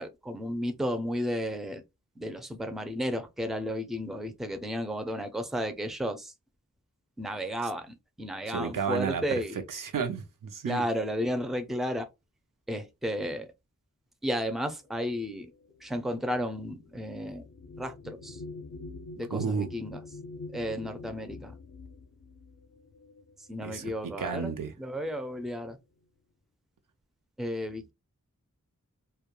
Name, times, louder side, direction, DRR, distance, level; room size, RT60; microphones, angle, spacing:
voice 1, 0.0-1.8 2.2-6.3 7.2-9.6 10.6-12.1 12.7-13.5 14.2-15.5 15.8-17.5 17.8-18.4 19.2-20.0 20.5-21.5 23.5-24.5 24.8-25.8 27.4-27.9, equal, ahead, 0.4 m, -33 dB
voice 2, 8.5-10.8 19.3-19.7 23.6-24.7, right 6 dB, 85° right, 0.5 m, -32 dB
sound 1, 14.9-23.8 24.8-24.9 25.3-25.8, left 3 dB, 60° left, 0.4 m, -46 dB
2.2 x 2.2 x 2.9 m
wide cardioid pair, 65°, 31 cm